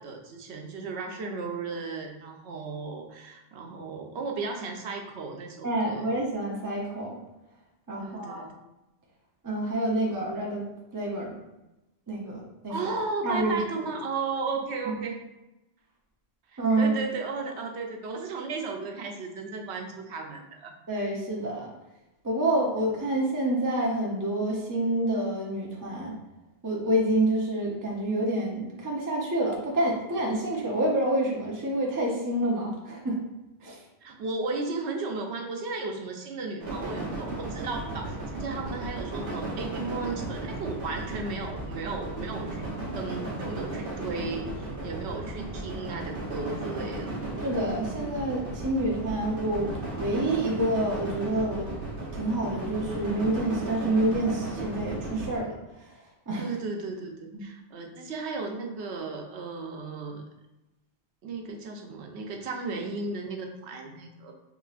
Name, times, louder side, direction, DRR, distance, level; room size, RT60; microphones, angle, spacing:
voice 1, 0.0-6.1 8.0-8.5 12.7-15.2 16.5-20.7 34.0-42.6 43.0-47.3 56.4-60.2 61.2-64.3, right 3 dB, 90° right, 2 dB, 0.9 m, -35 dB
voice 2, 5.6-7.2 7.9-8.4 9.4-10.6 10.9-11.3 12.1-12.8 13.2-13.5 14.9-15.0 16.6-16.9 20.9-21.7 22.2-26.1 26.6-33.2 33.6-33.8 47.4-49.7 50.0-51.7 52.1-55.5 55.8-55.9 56.3-56.5, right 1 dB, 25° right, -2 dB, 0.5 m, -28 dB
sound 1, 36.6-55.4, right 2 dB, 60° right, 1.1 m, -35 dB
4.9 x 3.0 x 2.4 m, 0.98 s
omnidirectional pair, 1.1 m